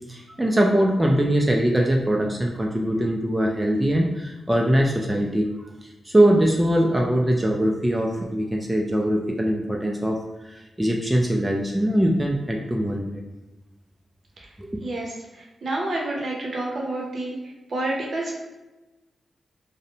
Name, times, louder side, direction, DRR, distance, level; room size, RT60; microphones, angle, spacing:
voice 1, 0.1-5.5 6.1-13.2 14.6-14.8, right 1 dB, 15° right, 0 dB, 0.3 m, -22 dB
voice 2, 15.6-17.3 17.7-18.3, right 2 dB, 60° right, -2 dB, 0.7 m, -28 dB
2.6 x 2.0 x 2.7 m, 1.1 s
cardioid pair, 55°, 0 cm